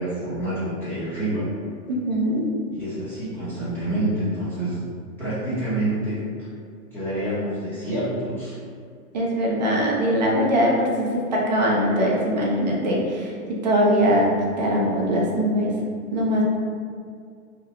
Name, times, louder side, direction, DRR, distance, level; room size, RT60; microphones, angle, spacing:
voice 1, 0.0-1.5 2.7-4.8 5.2-6.5 6.9-8.6, right 1 dB, 5° left, -13 dB, 0.8 m, -27 dB
voice 2, 1.9-2.4 9.1-13.3 13.6-14.3 14.6-15.7 16.1-16.4, equal, 35° right, -3 dB, 0.4 m, -21 dB
2.8 x 2.2 x 3.3 m, 2.2 s
hypercardioid pair, 145°, 44 cm